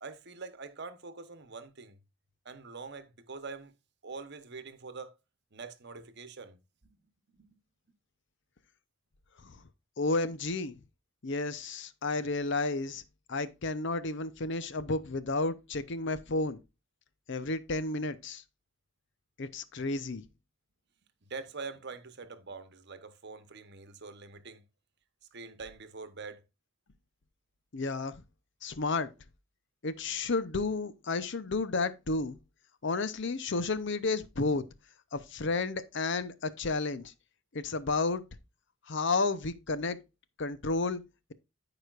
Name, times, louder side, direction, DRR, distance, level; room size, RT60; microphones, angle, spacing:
voice 1, 0.0-2.0 2.4-3.7 4.0-5.1 5.5-7.1 7.3-7.5 21.2-24.6 25.3-26.4, right 4 dB, 55° right, 1.0 m, -44 dB
voice 2, 10.0-10.7 11.2-13.0 13.3-16.6 17.3-18.4 19.4-20.2 27.7-28.2 28.6-29.1 29.8-32.4 32.8-34.6 35.1-37.1 37.5-38.2 38.9-40.0 40.4-41.0, left 3 dB, 60° left, 0.7 m, -32 dB
13.5 x 5.0 x 2.5 m
head